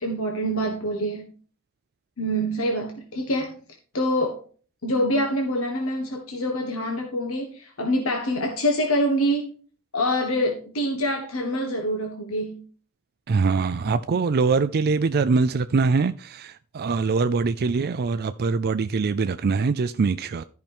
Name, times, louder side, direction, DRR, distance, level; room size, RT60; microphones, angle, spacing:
voice 1, 0.0-1.3 2.2-3.6 3.9-4.4 4.8-9.5 9.9-12.6, equal, 70° left, 1.6 m, -25 dB
voice 2, 13.3-20.4, right 4 dB, 45° right, 0.4 m, -23 dB
13.5 x 5.8 x 3.5 m
head